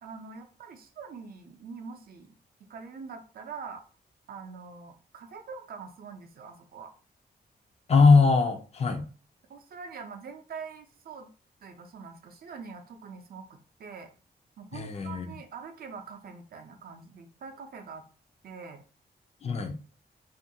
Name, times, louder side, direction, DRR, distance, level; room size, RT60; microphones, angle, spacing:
voice 1, 0.0-2.3 2.7-3.8 4.3-6.9 9.5-11.3 11.6-14.1 14.6-18.0 18.4-18.8, right 5 dB, 65° right, 6 dB, 0.4 m, -44 dB
voice 2, 7.9-9.0 14.7-15.3 19.4-19.8, left 4 dB, 40° left, 6 dB, 0.3 m, -21 dB
2.4 x 2.2 x 2.6 m, 0.37 s
wide cardioid pair, 145°, 17 cm